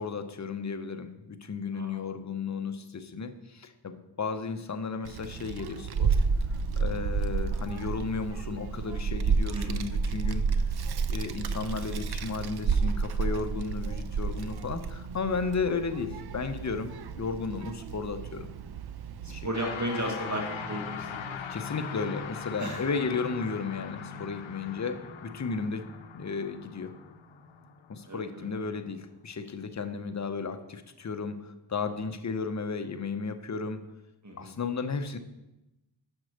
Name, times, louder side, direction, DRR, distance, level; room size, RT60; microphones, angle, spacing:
voice 1, 0.0-6.2 6.8-10.6 11.1-18.5 19.3-19.5 21.5-25.9 26.1-26.9 27.9-33.8 34.4-35.2, left 4 dB, 40° left, 9 dB, 0.7 m, -34 dB
Child speech kid speaking, 5.0-19.5, right 5 dB, 55° right, 0.5 m, -31 dB
voice 2, 9.5-9.9 15.6-15.8 19.2-21.4 21.9-22.1 22.6-22.8 28.1-28.5 34.2-34.5, right 1 dB, 40° right, 1 dB, 1.2 m, -35 dB
sound 1, 19.5-29.0, left 6 dB, 90° left, 0.6 m, -40 dB
6.0 x 4.4 x 6.4 m, 0.97 s
cardioid pair, 45°, 46 cm